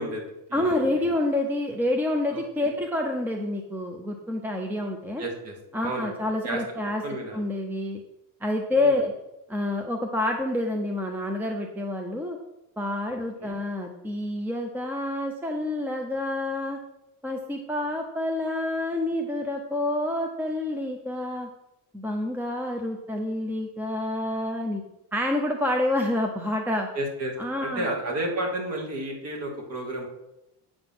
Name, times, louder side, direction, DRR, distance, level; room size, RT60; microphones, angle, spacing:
voice 1, 0.0-1.1 2.3-2.7 5.2-5.5 5.8-6.2 6.4-6.6 7.0-7.4 8.7-9.0 13.1-13.5 26.9-30.1, right 1 dB, 40° right, 1 dB, 2.6 m, -32 dB
voice 2, 0.5-5.2 5.7-7.0 7.3-8.0 8.4-9.1 9.5-12.4 12.8-16.8 17.2-21.5 21.9-24.8 25.1-26.9 27.4-27.8, left 1 dB, 5° right, 3 dB, 0.6 m, -28 dB
8.2 x 7.7 x 6.0 m, 0.89 s
cardioid pair, 165°, 37 cm